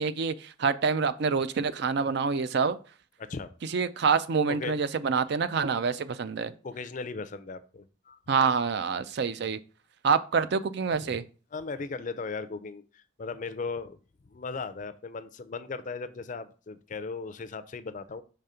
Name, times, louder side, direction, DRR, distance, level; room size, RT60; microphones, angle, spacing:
voice 1, 0.0-2.8 3.7-6.5 8.3-9.6 10.0-11.2, right 5 dB, 55° right, 0.4 m, -26 dB
voice 2, 3.2-3.8 4.5-4.8 6.6-8.2 11.1-11.2 11.5-14.0 14.2-18.2, left 4 dB, 40° left, 0.4 m, -37 dB
5.1 x 3.4 x 5.6 m
head